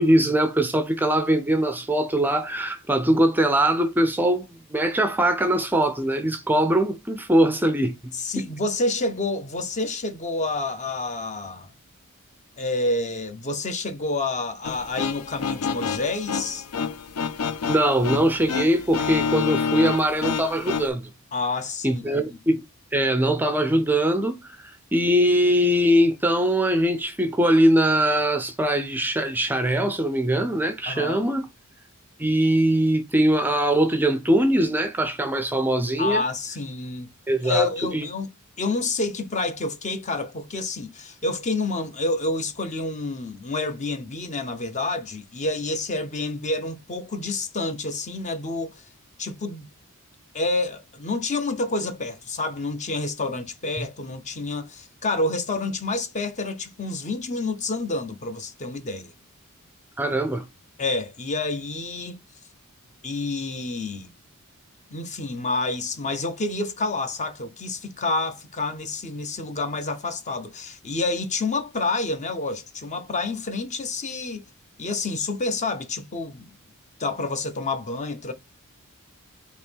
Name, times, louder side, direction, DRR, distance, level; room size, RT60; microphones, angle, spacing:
voice 1, 0.0-8.5 17.7-21.1 21.8-22.6 22.9-31.5 32.2-36.2 37.3-37.7 37.9-38.1 60.0-60.5, right 1 dB, 10° right, 0.4 m, -22 dB
voice 2, 8.1-11.7 12.6-16.7 21.3-22.4 30.9-31.3 36.0-37.1 37.4-38.3 38.6-48.8 49.2-49.7 50.3-59.1 60.8-62.2 63.0-64.1 64.9-74.5 74.8-76.6 77.0-78.3, left 2 dB, 35° left, 0.6 m, -28 dB
sound 1, 14.6-20.9, left 5 dB, 90° left, 0.5 m, -28 dB
4.3 x 2.9 x 3.5 m
head